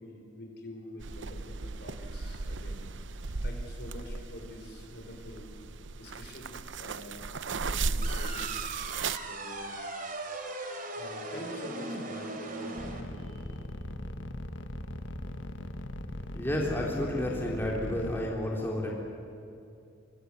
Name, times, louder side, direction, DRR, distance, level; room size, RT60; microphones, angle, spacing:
voice 1, 0.0-3.1 3.4-5.5 6.0-7.3 7.6-8.6 8.9-9.8 10.8-13.6 15.9-16.0, left 1 dB, 60° left, 2 dB, 4.9 m, -46 dB
sound 1, 1.0-9.2, right 4 dB, 75° right, 0.8 m, -36 dB
sound 2, 8.0-13.0, right 2 dB, 45° right, 3.1 m, -38 dB
sound 3, 12.8-18.2, left 1 dB, 80° left, 1.6 m, -39 dB
voice 2, 16.3-18.9, left 1 dB, 10° left, -3 dB, 3.4 m, -31 dB
24.5 x 24.0 x 8.3 m, 2.7 s
head